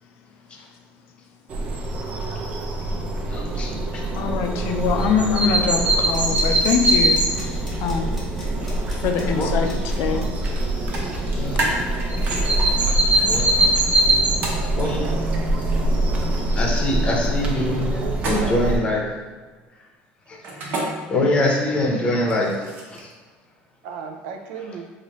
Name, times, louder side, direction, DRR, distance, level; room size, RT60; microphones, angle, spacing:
sound 1, 1.5-18.8, right 1 dB, 30° right, 0.5 m, -23 dB
voice 1, 3.3-4.4 7.4-7.6 8.6-8.8 9.2-9.8 10.1-10.2 11.3-11.6 13.2-13.7 14.7-15.1 16.5-19.0 20.3-20.4 21.1-23.1, left 1 dB, 25° left, -1 dB, 0.7 m, -25 dB
voice 2, 4.2-7.3 7.8-8.2 9.0-9.7 10.0-10.2, left 6 dB, 65° left, 4 dB, 0.4 m, -23 dB
sound 2, 6.1-13.7 13.9-14.0, left 1 dB, 5° left, 1.0 m, -44 dB
sound 3, 10.4-10.6 10.9-12.7 14.4-14.6 18.1-18.7 20.4-20.8 22.2-23.1, right 2 dB, 45° right, 0.9 m, -28 dB
voice 3, 17.0-17.4 18.0-18.8 23.8-24.9, right 5 dB, 85° right, 4 dB, 0.5 m, -35 dB
4.1 x 2.6 x 3.1 m, 1.3 s
cardioid pair, 140°, 4 cm